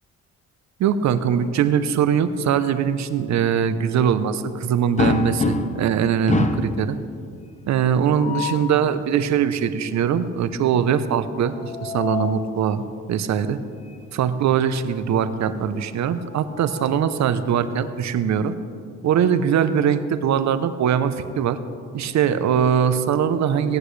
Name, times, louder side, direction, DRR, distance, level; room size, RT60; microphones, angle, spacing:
voice 1, 0.8-7.0 7.7-12.8 13.1-13.6 14.1-18.5 19.0-21.6 21.9-23.8, right 8 dB, 65° right, 12 dB, 0.7 m, -21 dB
sound 1, 5.0-5.9 6.3-6.8 8.0-8.7 11.4-12.4 13.9-14.0 14.4-14.5 16.0-17.3, left 4 dB, 25° left, 0.7 m, -27 dB
17.5 x 9.9 x 3.3 m, 2.3 s
cardioid pair, 90°, 30 cm